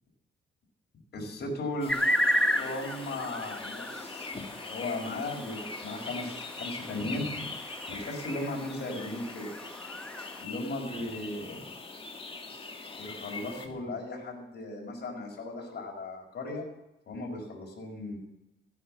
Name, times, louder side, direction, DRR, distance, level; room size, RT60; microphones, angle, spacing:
voice 1, 1.1-1.9 2.5-4.3 4.7-7.5 7.9-9.5 10.4-11.7 13.0-16.7 17.1-18.2, left 2 dB, 55° left, -1 dB, 5.2 m, -36 dB
sound 1, 1.8-13.7, left 3 dB, 25° left, 2.0 m, -42 dB
sound 2, 1.9-10.4, equal, 5° left, 1.3 m, -33 dB
16.0 x 9.3 x 7.8 m, 0.90 s
cardioid pair, 90°, 20 cm